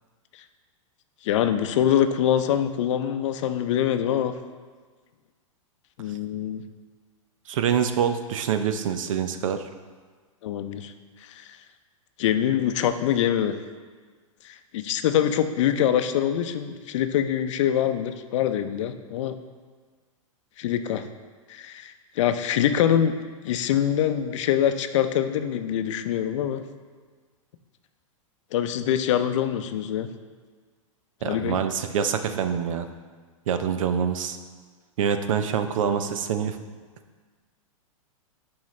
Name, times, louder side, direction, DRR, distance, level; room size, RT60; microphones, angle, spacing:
voice 1, 1.2-4.3 6.0-6.6 10.4-10.9 11.4-11.5 12.2-13.5 14.4-19.3 20.6-21.0 21.5-23.1 23.4-26.6 28.5-30.1 31.2-31.6, left 10 dB, 60° left, 9 dB, 0.6 m, -24 dB
voice 2, 7.5-9.6 31.2-32.9 33.5-34.4 35.0-36.6, right 7 dB, 70° right, 9 dB, 0.7 m, -25 dB
10.5 x 4.7 x 3.2 m, 1.5 s
hypercardioid pair, 115°, 17 cm